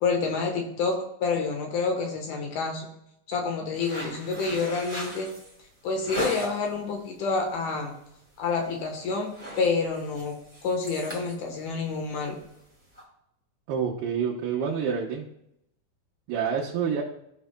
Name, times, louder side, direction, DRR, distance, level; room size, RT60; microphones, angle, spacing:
voice 1, 0.0-2.9 3.3-5.3 5.8-8.0 8.4-10.4 10.6-12.4, left 4 dB, 65° left, 2 dB, 2.4 m, -28 dB
sound 1, 3.7-6.8 7.2-7.6 7.9-8.1 8.4-8.8 9.1-13.0, right 1 dB, 5° left, 1.5 m, -39 dB
voice 2, 13.7-15.2 16.3-17.0, right 7 dB, 80° right, -5 dB, 3.0 m, -27 dB
15.0 x 6.0 x 2.2 m, 0.79 s
omnidirectional pair, 4.4 m